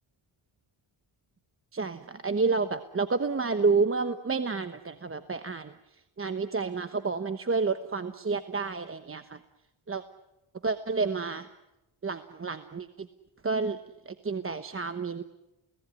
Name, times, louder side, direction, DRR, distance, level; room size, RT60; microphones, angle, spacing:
voice 1, 1.7-5.7 6.2-9.4 9.9-10.0 10.6-11.5 12.0-13.1 13.4-13.8 14.1-15.2, right 4 dB, 25° right, 9 dB, 1.1 m, -29 dB
29.5 x 18.5 x 9.8 m, 0.95 s
wide cardioid pair, 115°, 48 cm